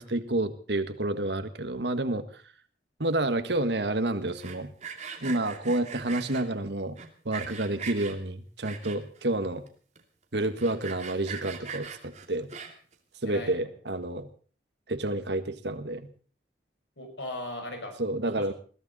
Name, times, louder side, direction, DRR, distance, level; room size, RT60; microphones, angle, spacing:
voice 1, 0.0-2.3 3.0-4.7 5.2-7.0 7.2-9.7 10.3-12.5 13.2-14.3 14.9-16.1 18.0-18.5, right 2 dB, 70° right, 10 dB, 1.5 m, -29 dB
Sawing, 4.3-6.4 7.0-8.1 8.6-9.2 9.7-9.8 9.9-10.0 10.4-12.9, right 6 dB, 40° right, 2.5 m, -40 dB
voice 2, 13.2-13.7 17.0-18.0 18.2-18.5, left 1 dB, 75° left, 3 dB, 6.4 m, -39 dB
21.5 x 15.0 x 4.1 m, 0.40 s
head